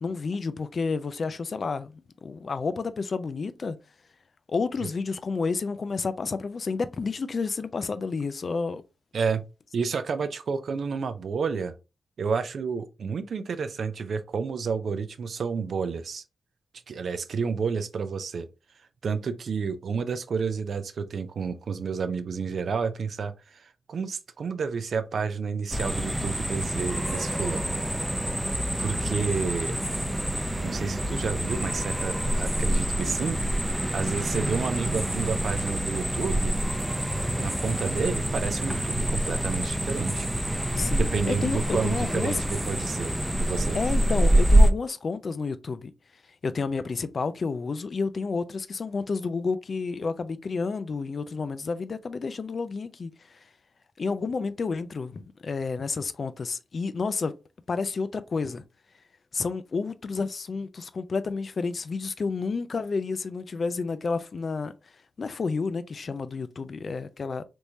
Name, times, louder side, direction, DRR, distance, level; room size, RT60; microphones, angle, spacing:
voice 1, 0.0-3.8 4.5-8.8 40.7-42.4 43.7-45.9 46.4-53.4 54.0-57.3 57.7-58.6 59.3-64.7 65.2-67.4, left 4 dB, 60° left, 0.4 m, -30 dB
voice 2, 9.7-11.7 12.2-16.2 16.9-18.5 19.0-27.8 28.8-29.8 30.6-33.4 33.9-36.6 37.1-40.3 41.0-43.8, right 5 dB, 70° right, 0.4 m, -30 dB
sound 1, 25.7-44.7, right 1 dB, 10° right, 0.5 m, -26 dB
3.5 x 3.0 x 2.6 m
supercardioid pair, 45°, 0 cm